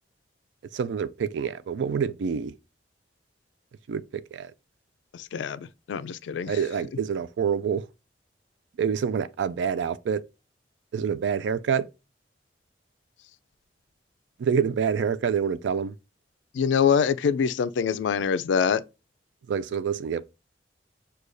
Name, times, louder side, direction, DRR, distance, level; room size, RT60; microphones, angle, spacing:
voice 1, 0.7-2.6 3.9-4.5 6.5-7.9 8.8-10.2 10.9-11.9 14.4-15.9 19.5-20.2, right 7 dB, 85° right, 0.4 m, -27 dB
voice 2, 5.1-6.5 16.5-18.8, left 7 dB, 85° left, 0.3 m, -24 dB
6.3 x 2.3 x 2.5 m
head